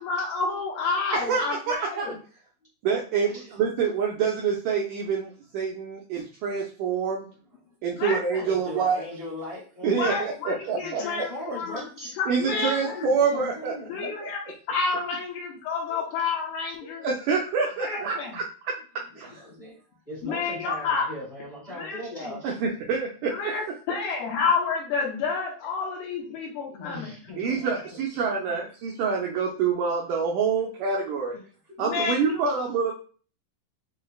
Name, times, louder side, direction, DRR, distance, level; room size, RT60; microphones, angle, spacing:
voice 1, 0.0-2.1 8.0-8.5 9.8-11.9 12.2-13.1 13.9-17.1 17.8-18.3 20.2-21.1 21.8-22.3 23.3-27.2 27.4-27.7 31.8-32.4, left 4 dB, 85° left, -2 dB, 2.9 m, -30 dB
voice 2, 1.2-2.1 2.8-7.3 7.8-9.0 9.8-11.0 12.3-14.3 17.0-18.8 19.2-19.4 22.4-23.5 27.4-31.4 31.8-32.9, right 5 dB, 85° right, -2 dB, 1.8 m, -27 dB
voice 3, 3.3-3.9 8.4-10.2 10.8-12.1 12.5-14.1 15.9-16.0 16.8-17.2 18.0-18.1 19.2-19.8 20.1-22.5 26.6-27.6 27.9-28.2 28.5-28.6 31.3-31.4 31.7-31.8 32.3-32.4, left 1 dB, 40° left, -7 dB, 0.5 m, -39 dB
6.4 x 3.2 x 2.3 m, 0.41 s
omnidirectional pair, 4.4 m